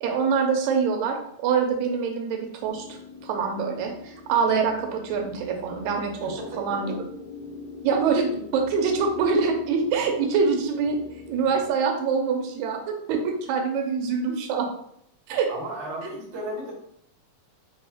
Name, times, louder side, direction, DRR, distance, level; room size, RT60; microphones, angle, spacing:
voice 1, 0.0-7.0 7.8-11.0 11.3-14.7 15.3-15.5, right 5 dB, 85° right, 4 dB, 1.9 m, -25 dB
sound 1, 2.7-11.7, left 4 dB, 80° left, 1.9 m, -43 dB
voice 2, 6.2-6.8 15.5-16.7, right 1 dB, 55° right, -4 dB, 0.7 m, -34 dB
4.5 x 2.7 x 3.4 m, 0.71 s
omnidirectional pair, 3.4 m